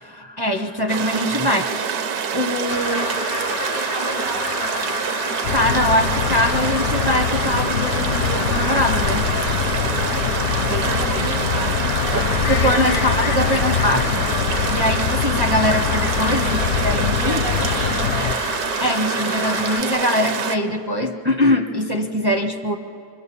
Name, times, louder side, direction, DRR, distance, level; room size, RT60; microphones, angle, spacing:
voice 1, 0.0-1.6 2.3-3.0 5.5-9.2 10.6-11.2 12.1-14.2 14.7-16.6 16.8-17.5 18.8-22.8, left 1 dB, 20° right, 4 dB, 0.6 m, -22 dB
sound 1, 0.9-20.6, right 6 dB, 60° right, 1.3 m, -26 dB
voice 2, 1.5-1.8 2.9-5.0 10.8-13.3 16.4-18.5, right 2 dB, 80° right, -2 dB, 3.7 m, -33 dB
sound 2, 2.7-19.8, left 6 dB, 85° left, 1.7 m, -31 dB
sound 3, 5.4-18.3, left 8 dB, 65° left, 0.9 m, -24 dB
25.5 x 24.0 x 7.1 m, 2.6 s
omnidirectional pair, 2.0 m